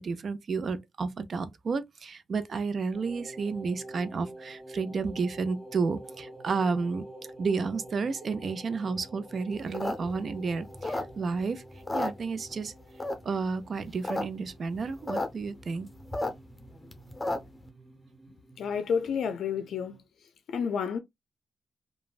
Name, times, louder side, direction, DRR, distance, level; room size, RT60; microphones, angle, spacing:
voice 1, 0.0-7.0 7.4-11.6 11.9-12.7 13.2-15.9, right 4 dB, 55° right, 0.5 m, -31 dB
sound 1, 2.9-20.0, right 1 dB, 10° right, 1.8 m, -49 dB
sound 2, 9.6-11.4 11.7-12.6 13.0-13.4 13.8-14.2 14.5-14.6 14.7-15.3 15.6-17.6, left 2 dB, 20° left, 0.7 m, -32 dB
voice 2, 18.6-20.0 20.5-21.0, left 6 dB, 75° left, 0.4 m, -30 dB
3.1 x 2.2 x 2.4 m
cardioid pair, 65°, 0 cm